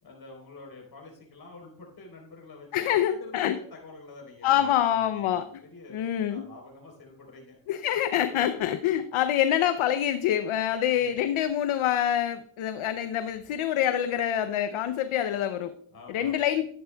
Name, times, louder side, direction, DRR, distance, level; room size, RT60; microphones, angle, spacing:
voice 1, 0.0-7.6 11.0-11.1 15.9-16.5, left 3 dB, 45° left, 0 dB, 3.9 m, -48 dB
voice 2, 2.7-3.6 4.4-5.5 5.9-6.4 7.7-15.7 16.1-16.7, left 11 dB, 80° left, 11 dB, 0.7 m, -26 dB
12.0 x 9.4 x 2.3 m, 0.66 s
cardioid pair, 80°, 49 cm